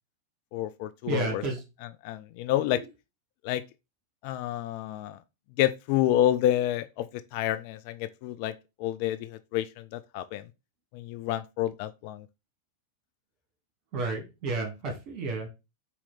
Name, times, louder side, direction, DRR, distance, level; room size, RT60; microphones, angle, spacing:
voice 1, 0.5-1.4 2.0-2.8 3.4-3.6 4.2-5.2 5.6-8.5 8.8-10.5 10.9-12.3, left 12 dB, 45° left, 0.3 m, -29 dB
voice 2, 1.1-1.6 2.7-2.9 13.9-15.5, right 3 dB, 35° right, 1.7 m, -31 dB
4.3 x 2.8 x 4.0 m
figure-of-eight pair, 90°, 0 cm